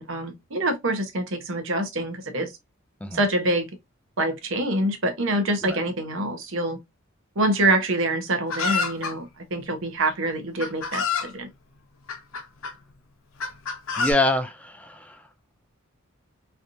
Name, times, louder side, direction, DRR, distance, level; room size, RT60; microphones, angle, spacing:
voice 1, 0.0-2.5 3.1-3.7 4.2-6.8 7.4-11.5, right 1 dB, 65° right, 0.9 m, -25 dB
Chicken rooster, 8.5-9.1 10.1-10.2 10.6-11.3 12.1-12.7 13.4-14.1, left 5 dB, 75° left, 0.7 m, -27 dB
voice 2, 14.0-15.3, left 2 dB, 5° left, 0.3 m, -26 dB
3.3 x 2.8 x 2.5 m
head